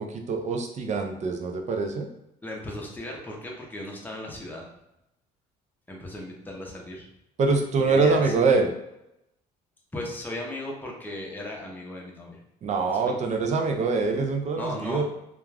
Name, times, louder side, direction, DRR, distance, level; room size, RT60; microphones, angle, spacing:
voice 1, 0.0-2.1 7.4-8.7 12.6-15.0, right 4 dB, 45° right, 3 dB, 0.4 m, -24 dB
voice 2, 2.4-4.6 5.9-7.1 7.8-8.3 9.9-12.4 12.9-13.0 14.6-15.0, left 1 dB, 10° left, -2 dB, 0.6 m, -36 dB
2.4 x 2.2 x 3.2 m, 0.86 s
cardioid pair, 110°, 17 cm